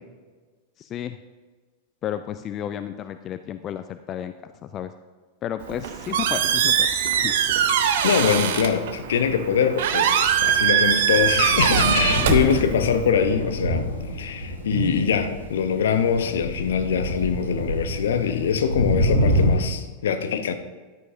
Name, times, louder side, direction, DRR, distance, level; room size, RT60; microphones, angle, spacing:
voice 1, 0.8-1.2 2.0-4.9 5.4-6.9 7.2-7.3 12.2-12.5, left 10 dB, 30° left, 0.4 m, -31 dB
Squeak, 5.6-13.1, right 9 dB, 55° right, 0.8 m, -22 dB
voice 2, 8.0-13.9 14.1-20.5, left 7 dB, 60° left, 0.9 m, -23 dB
Thunder, 10.0-19.5, equal, 90° left, 2.3 m, -27 dB
14.0 x 11.0 x 2.7 m
figure-of-eight pair, 90°, 0 cm